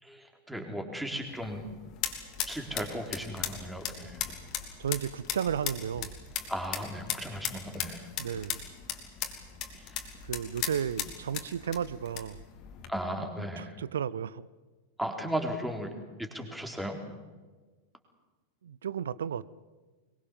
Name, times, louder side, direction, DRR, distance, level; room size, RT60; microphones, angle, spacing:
voice 1, 0.0-1.6 2.5-4.2 6.5-8.1 9.8-10.0 12.9-13.8 15.0-15.9 16.2-17.0, equal, 5° right, 4 dB, 3.9 m, -36 dB
sound 1, 1.3-12.9, left 9 dB, 40° left, 3.2 m, -38 dB
voice 2, 4.8-6.2 8.2-8.7 10.2-12.4 13.6-14.5 18.6-19.5, right 8 dB, 65° right, 20 dB, 0.6 m, -33 dB
23.5 x 22.5 x 7.4 m, 1.3 s
figure-of-eight pair, 90°, 0 cm